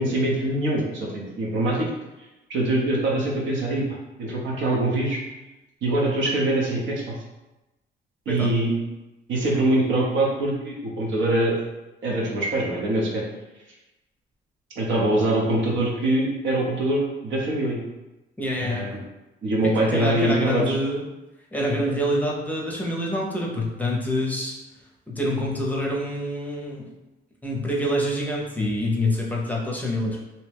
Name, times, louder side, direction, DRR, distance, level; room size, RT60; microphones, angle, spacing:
voice 1, 0.0-1.9 2.5-5.2 5.8-7.2 8.3-8.7 9.3-11.5 12.0-13.2 14.8-17.8 18.6-18.9 19.4-20.8, right 1 dB, 75° right, -2 dB, 0.8 m, -23 dB
voice 2, 18.4-19.0 19.6-21.0 21.5-24.5 25.1-26.9 27.4-30.2, left 1 dB, 10° left, -3 dB, 0.6 m, -26 dB
2.7 x 2.1 x 3.3 m, 1.0 s
cardioid pair, 90°, 20 cm